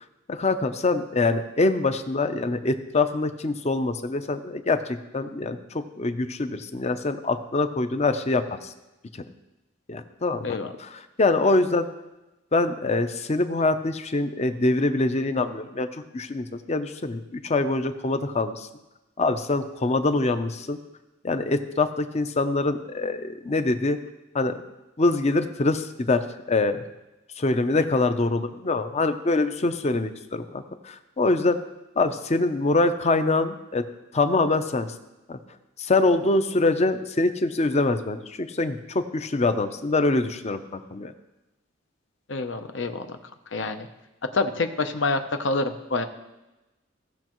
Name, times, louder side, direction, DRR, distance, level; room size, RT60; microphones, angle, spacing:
voice 1, 0.3-8.7 9.9-11.9 12.5-15.9 16.1-18.7 19.2-20.8 21.2-24.0 24.3-24.6 25.0-26.8 27.4-31.6 32.0-33.8 34.1-34.9 35.3-35.4 35.8-41.1, left 2 dB, 35° left, 9 dB, 0.6 m, -24 dB
voice 2, 42.3-43.1 43.5-43.9 44.3-46.0, left 3 dB, 65° left, 8 dB, 0.7 m, -27 dB
17.0 x 6.3 x 3.1 m, 1.0 s
head